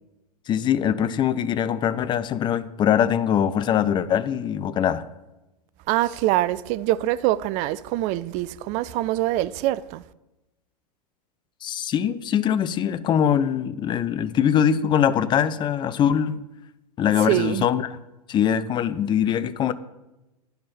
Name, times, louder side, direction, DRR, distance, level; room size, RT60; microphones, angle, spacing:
voice 1, 0.5-5.0 11.6-16.4 17.0-17.9 18.3-19.7, left 9 dB, 25° left, 0.5 m, -22 dB
voice 2, 5.9-10.0 17.3-17.7, right 15 dB, 35° right, 0.4 m, -24 dB
10.5 x 5.7 x 5.5 m
figure-of-eight pair, 100°, 20 cm